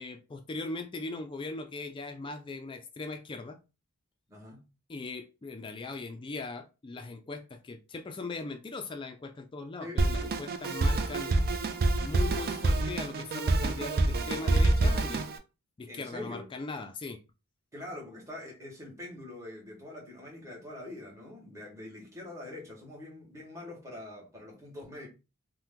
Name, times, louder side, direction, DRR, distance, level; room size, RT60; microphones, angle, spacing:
voice 1, 0.0-3.6 4.9-11.3 12.0-15.2 15.8-17.2, left 3 dB, 20° left, 0.3 m, -39 dB
voice 2, 4.3-4.6 9.8-10.4 15.9-16.5 17.7-25.1, left 1 dB, 15° right, 1.2 m, -44 dB
Drum kit, 10.0-15.4, right 2 dB, 45° right, 0.4 m, -27 dB
2.8 x 2.1 x 3.5 m
head